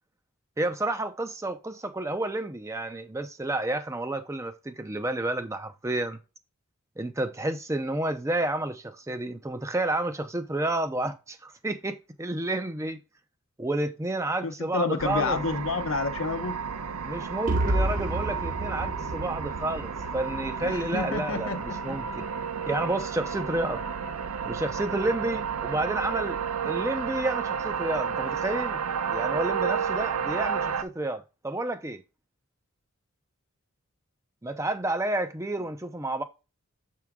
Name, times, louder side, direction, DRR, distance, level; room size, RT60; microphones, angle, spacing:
voice 1, 0.6-6.2 7.0-13.0 13.6-15.4 17.0-22.3 22.7-23.8 24.4-26.4 26.6-28.8 29.1-32.0 34.4-36.2, right 2 dB, 15° right, 0.5 m, -30 dB
voice 2, 14.4-16.6 20.6-22.0, left 4 dB, 60° left, 0.8 m, -30 dB
sound 1, 15.0-30.8, right 6 dB, 90° right, 0.6 m, -31 dB
sound 2, 17.5-21.4, right 1 dB, 35° right, 0.8 m, -30 dB
7.0 x 4.6 x 3.6 m
head